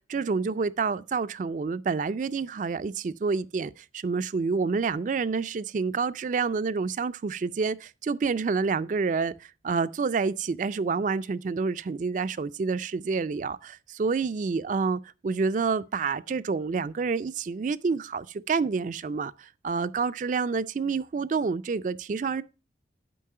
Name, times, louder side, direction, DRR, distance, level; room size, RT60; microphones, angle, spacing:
voice 1, 0.0-9.3 9.6-22.4, right 4 dB, 45° right, 0.3 m, -28 dB
8.5 x 5.4 x 5.5 m
head